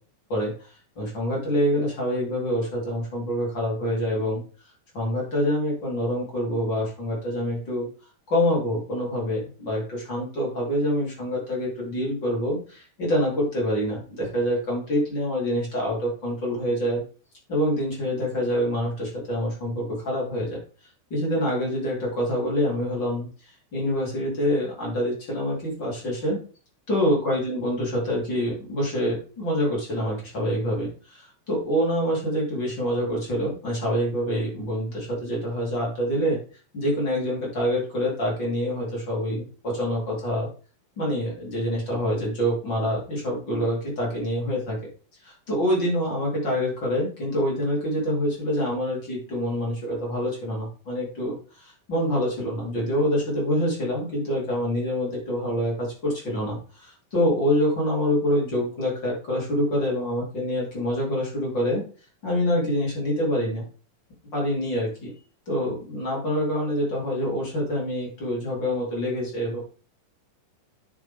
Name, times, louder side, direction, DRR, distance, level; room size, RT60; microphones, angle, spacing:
voice 1, 0.3-4.4 4.9-7.9 8.3-17.0 17.5-20.6 21.1-26.4 26.9-36.4 36.7-40.5 41.0-44.8 45.2-61.8 62.2-63.6 64.3-65.1 65.5-69.6, equal, 30° left, -4 dB, 3.7 m, -26 dB
9.2 x 6.3 x 3.6 m, 0.37 s
omnidirectional pair, 4.0 m